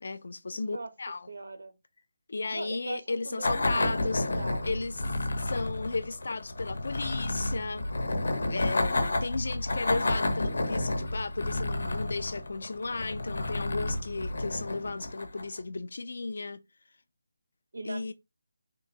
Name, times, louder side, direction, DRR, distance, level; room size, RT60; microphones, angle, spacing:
voice 1, 0.0-1.3 2.3-4.2 4.6-5.0 5.4-7.9 8.5-16.6 17.8-18.1, left 3 dB, 50° left, 0.4 m, -34 dB
voice 2, 0.5-0.9 1.3-1.7 2.5-4.8 17.7-18.1, right 3 dB, 75° right, 1.2 m, -40 dB
sound 1, 3.4-15.6, left 2 dB, 90° left, 0.9 m, -31 dB
3.7 x 2.6 x 4.1 m
hypercardioid pair, 180°, 0 cm